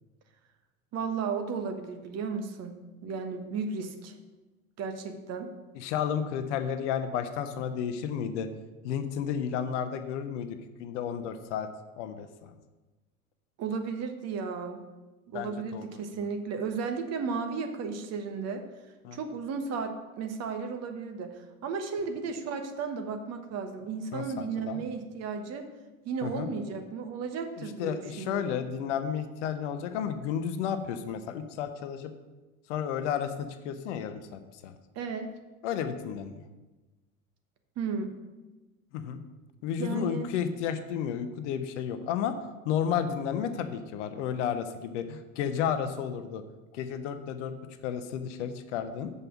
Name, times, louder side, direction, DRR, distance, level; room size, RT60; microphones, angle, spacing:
voice 1, 0.9-2.7 3.0-4.2 4.8-5.5 13.6-14.8 15.3-18.6 19.1-25.6 26.0-28.5 34.9-35.3 37.8-38.1 39.7-40.3, right 5 dB, 35° right, 6 dB, 1.2 m, -34 dB
voice 2, 5.8-8.5 8.8-11.7 12.0-12.5 15.3-16.0 19.0-19.2 24.1-24.8 26.2-26.5 27.8-32.1 32.7-34.7 35.6-36.4 38.9-39.2 39.6-42.3 42.6-46.4 46.7-47.5 47.8-49.1, left 8 dB, 55° left, 9 dB, 0.9 m, -32 dB
6.7 x 5.5 x 7.1 m, 1.2 s
figure-of-eight pair, 80°, 43 cm